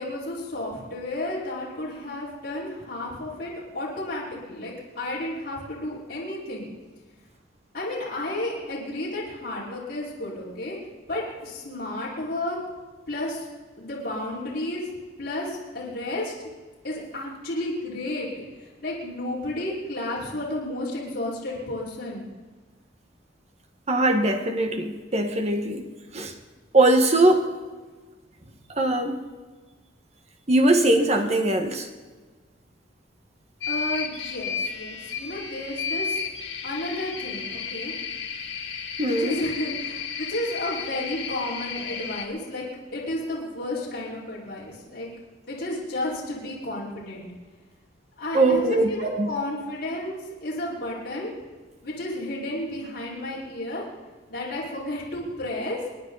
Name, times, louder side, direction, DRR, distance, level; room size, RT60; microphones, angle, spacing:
voice 1, 0.0-6.7 7.7-10.8 11.1-12.6 13.1-13.4 13.8-14.8 15.2-16.3 16.8-22.3 33.7-36.2 36.6-37.9 39.0-45.1 45.5-47.3 48.2-51.3 51.8-53.8 54.3-55.8, left 1 dB, 55° left, -8 dB, 5.1 m, -32 dB
voice 2, 23.9-25.9 26.1-26.3 26.7-27.4 28.8-29.2 30.5-31.9 39.0-39.4 48.3-49.3, right 2 dB, 35° right, 5 dB, 1.6 m, -21 dB
sound 1, 33.6-42.2, left 6 dB, 75° left, 2.0 m, -33 dB
28.5 x 10.5 x 4.1 m, 1.4 s
head